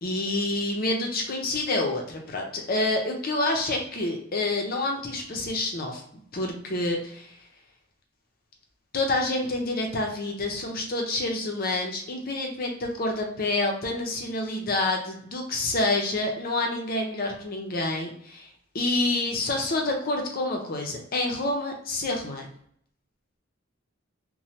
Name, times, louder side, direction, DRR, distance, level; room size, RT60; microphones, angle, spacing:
voice 1, 0.0-6.0 6.3-7.3 8.9-18.5 18.7-22.5, left 2 dB, 45° left, 2 dB, 0.6 m, -28 dB
3.1 x 2.2 x 2.8 m, 0.65 s
head